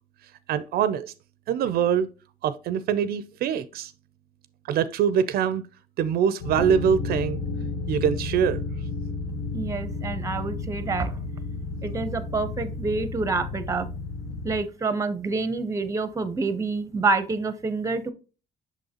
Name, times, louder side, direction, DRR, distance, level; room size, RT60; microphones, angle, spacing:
voice 1, 0.5-1.1 1.5-2.1 2.4-3.9 4.7-5.6 6.0-7.4 7.9-8.6, right 8 dB, 65° right, 0.4 m, -24 dB
sound 1, 6.4-14.6, left 3 dB, 75° left, 1.1 m, -32 dB
voice 2, 9.5-11.1 11.8-13.9 14.4-18.1, right 3 dB, 20° right, 0.6 m, -27 dB
6.2 x 5.4 x 2.8 m
cardioid pair, 110°, 17 cm